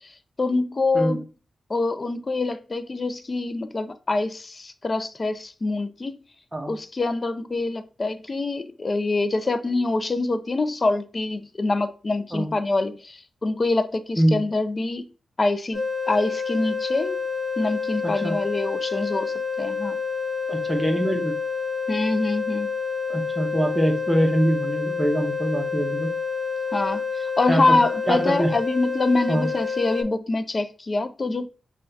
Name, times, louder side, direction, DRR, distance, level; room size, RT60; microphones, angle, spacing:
voice 1, 0.4-1.2 1.7-6.1 6.7-15.0 15.4-17.2 17.6-20.0 21.9-22.7 26.7-31.5, left 2 dB, 35° left, 0.3 m, -25 dB
sound 1, 15.7-30.0, left 5 dB, ahead, 1.2 m, -28 dB
voice 2, 18.0-18.4 20.5-21.3 23.1-26.1 27.5-28.5 29.3-29.5, right 1 dB, 15° right, 0.7 m, -24 dB
5.5 x 2.2 x 2.6 m
wide cardioid pair, 105°, 0 cm